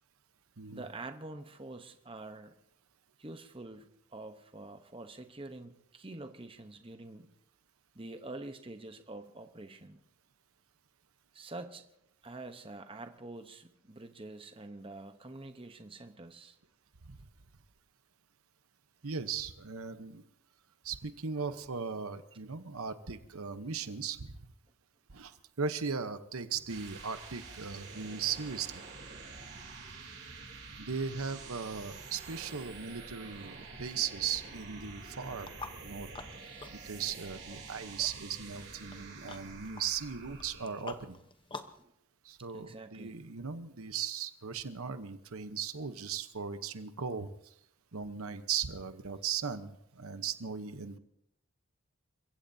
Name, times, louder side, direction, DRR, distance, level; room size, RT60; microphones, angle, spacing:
voice 1, 0.7-2.6 3.2-7.3 7.9-10.0 11.3-11.9 12.2-16.6 41.8-41.9 42.5-43.2, right 2 dB, 25° right, 7 dB, 0.9 m, -46 dB
voice 2, 19.0-20.2 20.8-24.4 25.1-28.8 30.8-35.5 35.8-36.1 36.8-41.2 42.2-47.3 47.9-51.0, right 6 dB, 75° right, 10 dB, 0.9 m, -38 dB
sound 1, 26.4-41.0, right 4 dB, 50° right, 3.2 m, -48 dB
sound 2, 35.4-41.8, left 3 dB, 20° left, 0.9 m, -49 dB
30.0 x 16.0 x 2.8 m, 0.76 s
head